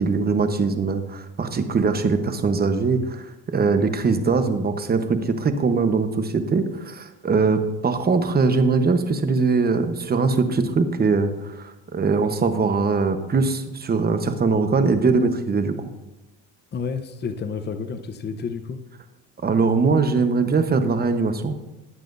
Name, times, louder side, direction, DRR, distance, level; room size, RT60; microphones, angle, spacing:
voice 1, 0.0-15.7 19.4-21.5, right 4 dB, 25° right, 8 dB, 1.0 m, -21 dB
voice 2, 16.7-18.8, left 5 dB, 25° left, 7 dB, 0.8 m, -30 dB
20.0 x 7.5 x 2.6 m, 0.99 s
cardioid pair, 105°, 39 cm